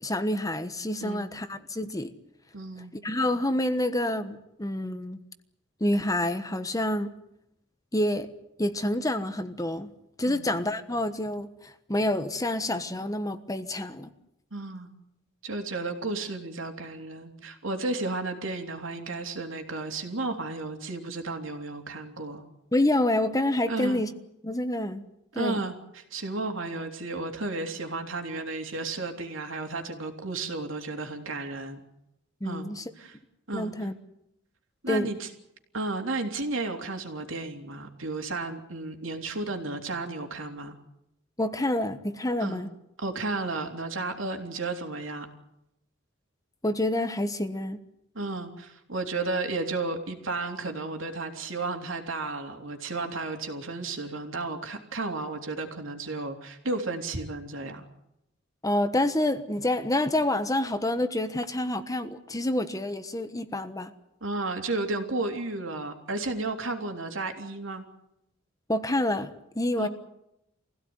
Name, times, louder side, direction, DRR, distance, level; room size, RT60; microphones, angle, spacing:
voice 1, 0.0-2.1 3.0-5.2 5.8-7.1 7.9-8.3 8.6-9.9 10.2-14.1 22.7-24.1 24.4-25.0 25.3-25.6 32.4-32.8 33.5-33.9 34.9-35.1 41.4-42.7 46.6-47.8 58.6-63.9 68.7-69.9, left 1 dB, 15° left, 10 dB, 1.2 m, -28 dB
voice 2, 2.5-3.0 10.3-10.5 14.5-14.9 15.4-22.4 23.7-24.0 25.4-31.8 32.4-32.7 33.0-33.2 33.5-33.7 34.8-35.3 35.7-40.8 42.4-42.6 43.0-45.3 48.2-57.8 64.2-67.8 69.8-69.9, right 3 dB, 65° right, 4 dB, 3.4 m, -33 dB
24.5 x 16.5 x 9.7 m, 0.83 s
head